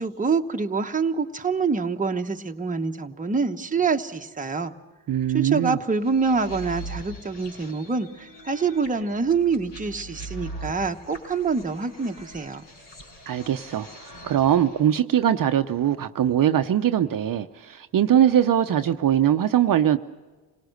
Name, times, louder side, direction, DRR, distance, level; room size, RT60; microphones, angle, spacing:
voice 1, 0.0-4.7 5.3-12.6, right 5 dB, 20° right, 5 dB, 1.1 m, -26 dB
voice 2, 5.1-5.8 13.3-20.0, right 10 dB, 50° right, 7 dB, 0.8 m, -21 dB
sound 1, 6.0-14.8, right 1 dB, 80° left, 7.7 m, -42 dB
27.0 x 18.0 x 6.5 m, 1.3 s
cardioid pair, 80°, 41 cm